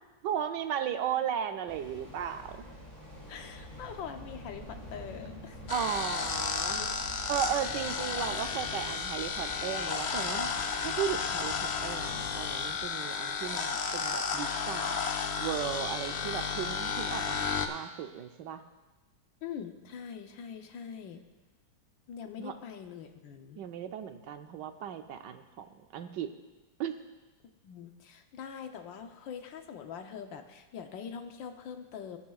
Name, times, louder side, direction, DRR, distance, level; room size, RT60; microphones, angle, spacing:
voice 1, 0.2-2.6 5.7-6.8 7.3-10.5 10.8-15.0 15.4-18.6 22.4-22.5 23.6-25.7 25.9-26.3 26.8-26.9, right 9 dB, 75° right, 8 dB, 1.3 m, -35 dB
sound 1, 1.7-12.9, equal, 20° left, 2.3 m, -47 dB
voice 2, 3.3-5.6 6.8-6.9 19.4-21.2 22.1-23.6 27.6-32.2, left 7 dB, 85° left, 6 dB, 1.6 m, -43 dB
sound 2, 5.7-17.7, left 5 dB, 65° left, 0.6 m, -33 dB
19.5 x 9.5 x 2.4 m, 1.1 s
omnidirectional pair, 2.0 m